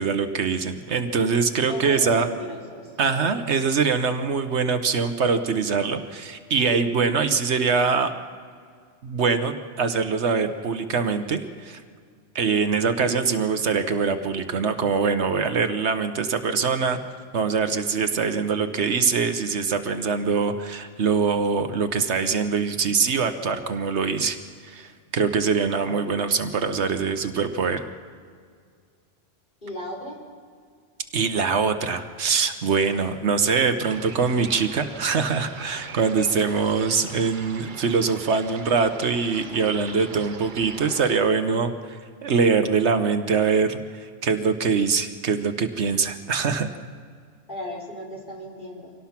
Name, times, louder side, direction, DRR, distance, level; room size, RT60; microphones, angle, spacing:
voice 1, 0.0-2.3 3.0-8.1 9.0-11.8 12.3-17.0 17.3-24.4 24.6-27.9 31.1-42.0 42.2-46.7, right 5 dB, 65° right, 8 dB, 1.2 m, -23 dB
voice 2, 1.7-2.9 29.6-30.2 47.5-48.9, left 1 dB, 40° left, -2 dB, 4.3 m, -36 dB
sound 1, 33.8-41.2, right 5 dB, 45° right, 1.0 m, -41 dB
25.0 x 18.0 x 5.9 m, 2.1 s
omnidirectional pair, 1.2 m